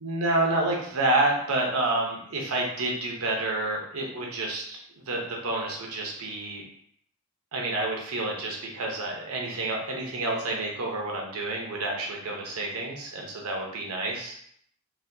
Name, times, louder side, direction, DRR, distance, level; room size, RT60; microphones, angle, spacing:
voice 1, 0.0-4.8 5.1-6.6 7.5-14.4, right 2 dB, 80° right, -1 dB, 0.8 m, -29 dB
4.0 x 2.2 x 2.7 m, 0.66 s
head